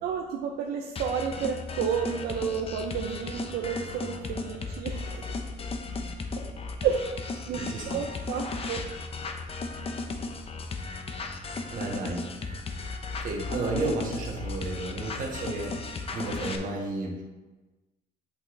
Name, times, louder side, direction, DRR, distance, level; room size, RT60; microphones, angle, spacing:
voice 1, 0.0-5.3 6.8-7.0 7.5-7.6 7.8-8.8, right 7 dB, 70° right, 1 dB, 0.7 m, -31 dB
sound 1, 1.0-16.6, left 3 dB, 35° left, 0.8 m, -35 dB
voice 2, 7.5-8.0 11.7-12.3 13.2-17.2, right 2 dB, 50° right, -1 dB, 1.7 m, -33 dB
8.1 x 5.7 x 3.3 m, 1.2 s
cardioid pair, 110°, 17 cm